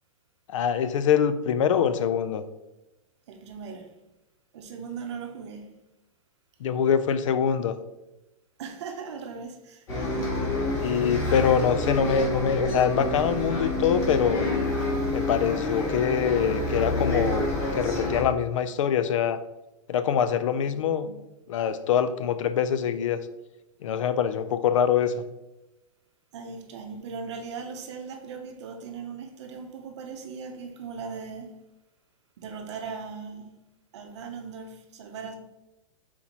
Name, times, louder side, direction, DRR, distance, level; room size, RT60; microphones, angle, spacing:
voice 1, 0.5-2.4 6.6-7.8 10.8-14.5 15.1-19.4 19.9-21.1 21.5-23.2 23.8-25.1, left 8 dB, 60° left, 12 dB, 0.4 m, -24 dB
voice 2, 3.3-3.9 4.5-5.7 8.6-10.6 10.9-11.1 20.6-21.2 26.3-31.5 32.4-33.5 33.9-35.4, right 5 dB, 50° right, 4 dB, 0.7 m, -39 dB
Bus, 9.9-18.2, left 2 dB, 15° left, 0.9 m, -28 dB
4.2 x 4.1 x 2.9 m, 0.97 s
supercardioid pair, 170°, 18 cm